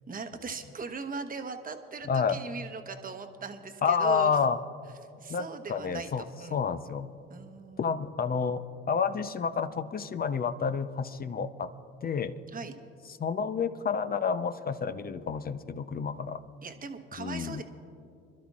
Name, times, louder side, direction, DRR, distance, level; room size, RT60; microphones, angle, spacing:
voice 1, 0.1-4.3 5.2-6.6 7.3-8.0 12.5-12.7 16.6-17.6, right 4 dB, 30° right, 6 dB, 1.1 m, -39 dB
voice 2, 2.1-2.4 3.8-4.6 5.3-6.2 6.5-7.1 7.8-11.7 12.0-12.4 13.2-16.4 17.2-17.6, left 6 dB, 30° left, 11 dB, 0.7 m, -29 dB
26.5 x 12.0 x 2.5 m, 2.5 s
supercardioid pair, 75°, 29 cm